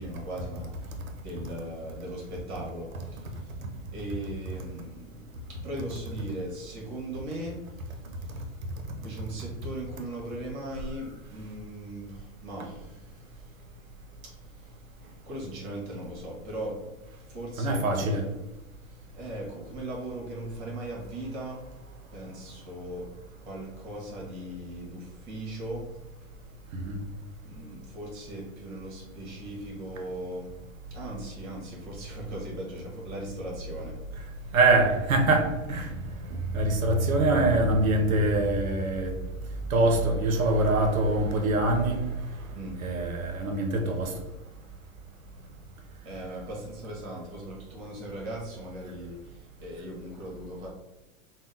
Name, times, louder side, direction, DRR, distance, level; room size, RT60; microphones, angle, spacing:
voice 1, 0.0-18.2 18.6-34.6 36.2-36.4 42.5-42.8 46.0-50.7, right 1 dB, 55° right, -2 dB, 1.4 m, -39 dB
voice 2, 17.6-18.2 26.7-27.0 34.5-35.9 36.5-39.2 39.7-42.0 42.8-44.1, right 2 dB, 85° right, 3 dB, 0.8 m, -24 dB
3.5 x 2.2 x 2.7 m, 1.0 s
hypercardioid pair, 110°, 40 cm